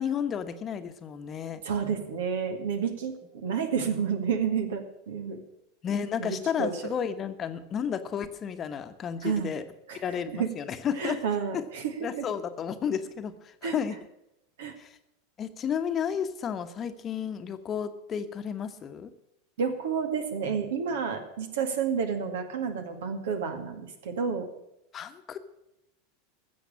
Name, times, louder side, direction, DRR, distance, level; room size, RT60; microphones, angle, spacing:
voice 1, 0.0-1.6 5.8-9.6 10.0-11.2 11.5-11.6 12.0-14.0 14.8-14.9 15.4-19.1 24.9-25.4, left 7 dB, 30° left, 9 dB, 1.2 m, -32 dB
voice 2, 1.6-5.4 6.2-6.9 9.2-9.5 9.9-10.5 11.0-12.2 13.6-13.7 14.6-14.8 19.6-24.4, right 6 dB, 70° right, 6 dB, 2.1 m, -30 dB
15.5 x 7.2 x 8.6 m, 0.85 s
hypercardioid pair, 85°, 0 cm